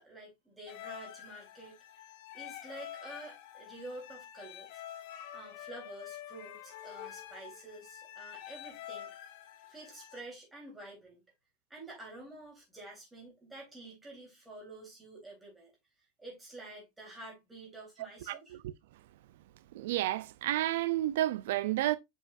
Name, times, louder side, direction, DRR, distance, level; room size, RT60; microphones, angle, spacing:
voice 1, 0.0-2.0 2.3-4.8 5.3-9.1 9.7-11.2 11.7-15.7 16.2-18.6, right 2 dB, 5° right, 3.3 m, -49 dB
sound 1, 0.7-10.2, left 11 dB, 55° left, 1.1 m, -47 dB
voice 2, 18.3-18.7 19.7-22.0, right 15 dB, 75° right, 0.4 m, -31 dB
7.3 x 5.5 x 2.4 m
supercardioid pair, 175°, 0 cm